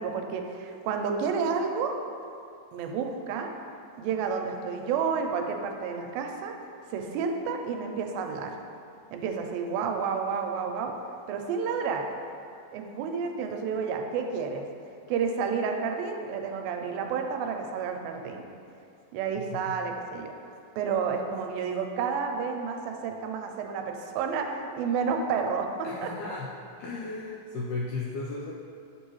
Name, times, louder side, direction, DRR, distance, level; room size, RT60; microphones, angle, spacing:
voice 1, 0.0-1.9 2.7-3.5 4.0-6.5 6.9-8.5 9.1-10.9 11.3-12.0 12.7-14.7 15.1-18.5 19.1-20.3 20.8-25.7 26.0-26.3, right 6 dB, 90° right, 4 dB, 2.4 m, -30 dB
voice 2, 19.4-19.7 25.8-26.5 26.8-28.5, left 3 dB, 85° left, -3 dB, 1.7 m, -35 dB
8.5 x 5.4 x 3.0 m, 2.5 s
omnidirectional pair, 4.1 m